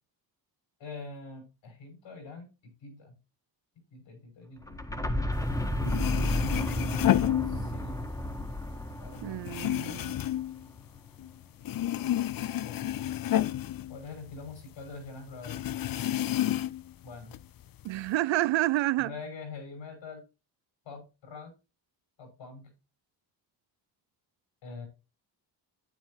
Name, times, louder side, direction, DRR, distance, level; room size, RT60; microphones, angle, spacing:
voice 1, 0.8-3.2 3.9-4.8 6.1-6.5 7.4-8.0 9.0-9.7 12.4-12.9 13.9-15.6 17.0-17.3 19.0-20.2 20.8-21.5 22.2-22.7 24.6-24.9, left 4 dB, 85° left, 6.2 m, -44 dB
sound 1, 4.6-10.4, left 1 dB, 5° left, 1.5 m, -32 dB
sound 2, 5.6-5.7 5.8-8.1 8.4-11.3 11.6-14.6 14.9-15.0 15.4-16.9 17.3-18.1, left 12 dB, 50° left, 0.5 m, -30 dB
voice 2, 9.2-10.2 17.8-19.1, right 17 dB, 80° right, 0.5 m, -29 dB
10.5 x 9.4 x 2.9 m
cardioid pair, 100°, 44 cm